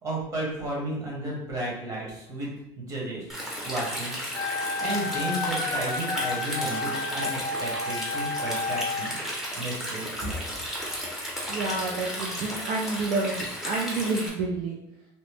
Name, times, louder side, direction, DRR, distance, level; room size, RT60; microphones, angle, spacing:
voice 1, 0.0-3.2 3.6-4.2 4.8-9.2 9.5-10.1, right 1 dB, 35° right, -4 dB, 1.2 m, -33 dB
Stream, 3.3-14.3, equal, 5° right, 0.7 m, -34 dB
Wind instrument woodwind instrument, 4.3-9.1, left 3 dB, 35° left, 0.3 m, -31 dB
voice 2, 11.5-14.8, right 3 dB, 65° right, -2 dB, 0.5 m, -29 dB
2.9 x 2.0 x 3.2 m, 0.83 s
cardioid pair, 120°, 10 cm